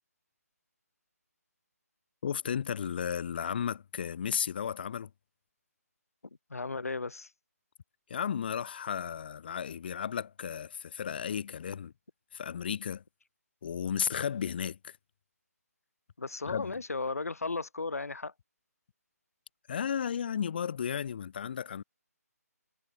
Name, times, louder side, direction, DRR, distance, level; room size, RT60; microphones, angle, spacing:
voice 1, 2.2-5.1 8.1-11.9 12.3-13.0 13.6-15.0 16.5-16.8 19.7-21.8, left 8 dB, 35° left, 0.9 m, -34 dB
voice 2, 6.5-7.3 16.2-18.3, left 3 dB, 60° left, 2.3 m, -35 dB
figure-of-eight pair, 145°, 9 cm